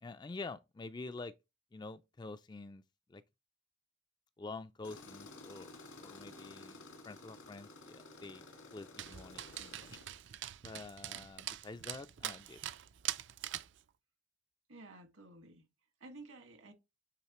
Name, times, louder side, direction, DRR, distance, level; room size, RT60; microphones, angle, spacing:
voice 1, 0.0-1.3 1.7-2.8 3.1-3.2 4.4-5.7 6.0-8.5 8.7-10.0 10.6-12.6, left 3 dB, 20° left, 0.3 m, -47 dB
Tools, 4.8-10.2, left 2 dB, 80° left, 2.0 m, -53 dB
Dog, 9.0-13.8, right 12 dB, 60° right, 0.4 m, -43 dB
voice 2, 14.7-15.6 16.0-16.7, right 2 dB, 75° right, 1.9 m, -53 dB
8.7 x 3.8 x 3.0 m
head